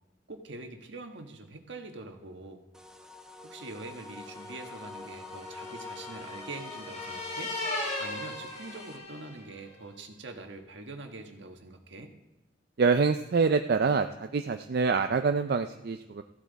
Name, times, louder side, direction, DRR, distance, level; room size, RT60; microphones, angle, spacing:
voice 1, 0.3-2.6 3.4-7.6 8.0-12.1, right 2 dB, 80° right, 4 dB, 1.4 m, -44 dB
sound 1, 2.7-9.0, left 3 dB, 5° right, 0.8 m, -46 dB
sound 2, 4.2-9.6, left 2 dB, 40° left, 2.9 m, -38 dB
voice 2, 12.8-16.2, right 4 dB, 55° right, 7 dB, 0.4 m, -26 dB
14.5 x 11.0 x 4.1 m, 0.94 s
head